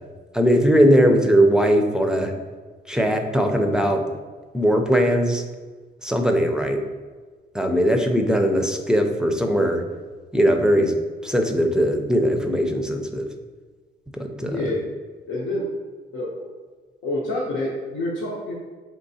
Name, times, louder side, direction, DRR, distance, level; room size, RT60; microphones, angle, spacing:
voice 1, 0.3-2.3 2.9-4.0 4.5-5.4 6.0-6.8 7.5-9.8 10.3-10.9 11.2-13.3 14.1-14.6, equal, 5° right, 4 dB, 0.4 m, -19 dB
voice 2, 14.4-14.8 15.3-15.7 16.1-16.5 17.0-18.5, left 1 dB, 85° left, -6 dB, 0.7 m, -27 dB
4.5 x 3.3 x 2.7 m, 1.4 s
cardioid pair, 90°, 20 cm